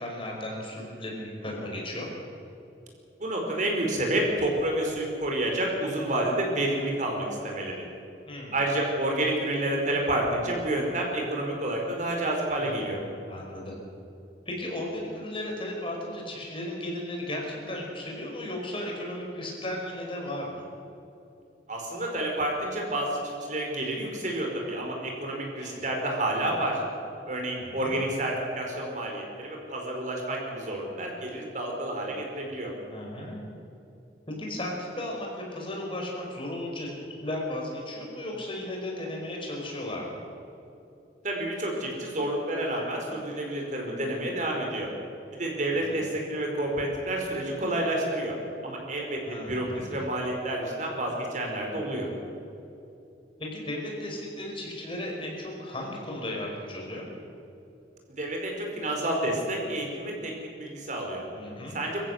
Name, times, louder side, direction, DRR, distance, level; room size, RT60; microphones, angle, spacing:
voice 1, 0.0-2.1 8.3-8.6 12.6-12.9 13.3-13.8 14.5-20.6 25.6-25.9 27.6-27.9 32.9-33.4 34.3-36.9 37.2-40.2 45.7-46.0 49.2-50.0 53.4-57.0 61.3-61.8, left 1 dB, 30° left, -1 dB, 5.1 m, -35 dB
voice 2, 3.2-7.8 8.5-13.0 21.7-26.8 27.3-32.7 41.2-44.9 45.3-48.4 48.6-52.1 58.1-61.2 61.7-62.1, right 1 dB, 45° right, 0 dB, 4.7 m, -29 dB
24.5 x 15.5 x 7.9 m, 2.8 s
head